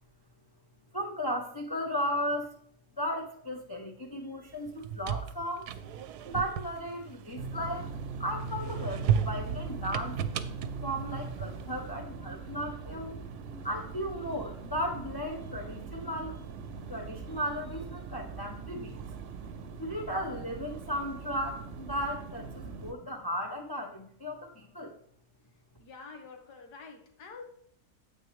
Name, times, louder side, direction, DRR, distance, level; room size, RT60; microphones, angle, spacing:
voice 1, 0.9-2.5 3.0-5.7 6.2-7.9 8.2-10.2 10.8-13.1 13.6-16.4 16.9-19.0 19.8-24.9, equal, 25° left, 2 dB, 0.5 m, -35 dB
sound 1, 4.7-7.9 8.4-11.8, right 8 dB, 85° right, 1.2 m, -34 dB
sound 2, 7.4-22.9, right 5 dB, 60° right, 0.9 m, -41 dB
voice 2, 25.8-27.5, left 4 dB, 80° left, 4 dB, 1.9 m, -47 dB
9.1 x 8.2 x 3.1 m, 0.68 s
omnidirectional pair, 1.7 m